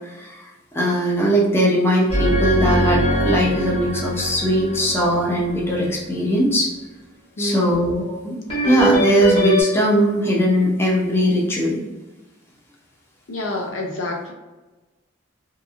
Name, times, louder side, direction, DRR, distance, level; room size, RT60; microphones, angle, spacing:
voice 1, 0.7-6.7 7.4-8.4 8.7-11.8, equal, 15° left, -3 dB, 0.5 m, -19 dB
sound 1, 2.1-6.1 8.5-9.6, equal, 30° left, 1.1 m, -22 dB
voice 2, 7.4-7.9 13.3-14.3, left 1 dB, 75° left, 1 dB, 0.6 m, -27 dB
2.8 x 2.5 x 2.4 m, 1.1 s
head